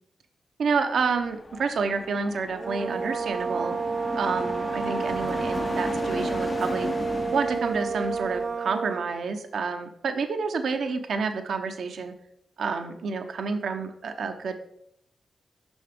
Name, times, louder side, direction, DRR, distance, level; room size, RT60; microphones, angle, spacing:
voice 1, 0.6-3.8 4.1-6.9 7.3-12.1 12.6-14.6, right 5 dB, 75° right, 7 dB, 0.7 m, -29 dB
sound 1, 1.1-8.5, left 3 dB, 45° left, 0.4 m, -36 dB
sound 2, 2.5-9.1, right 5 dB, 55° right, 0.3 m, -30 dB
7.1 x 5.7 x 3.5 m, 0.74 s
cardioid pair, 50°, 0 cm